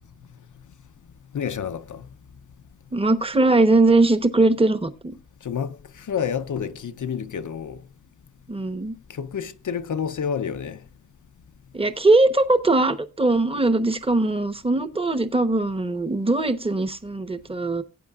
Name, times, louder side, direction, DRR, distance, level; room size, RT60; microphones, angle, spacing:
voice 1, 1.3-2.1 5.4-7.8 9.1-10.8, left 7 dB, 75° left, 0.7 m, -29 dB
voice 2, 2.9-5.1 8.5-8.9 11.7-17.8, right 2 dB, 20° right, 1.0 m, -20 dB
17.0 x 9.0 x 2.4 m
wide cardioid pair, 100°, 31 cm